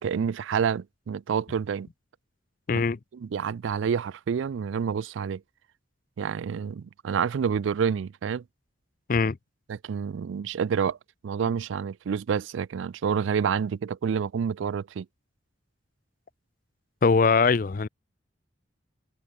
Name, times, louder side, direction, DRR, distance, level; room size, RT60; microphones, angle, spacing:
voice 1, 0.0-1.9 3.1-5.4 6.2-8.4 9.7-11.0 11.2-15.1, right 7 dB, 80° right, 0.4 m, -28 dB
voice 2, 2.7-3.0 9.1-9.4 17.0-17.9, left 4 dB, 45° left, 0.4 m, -21 dB
head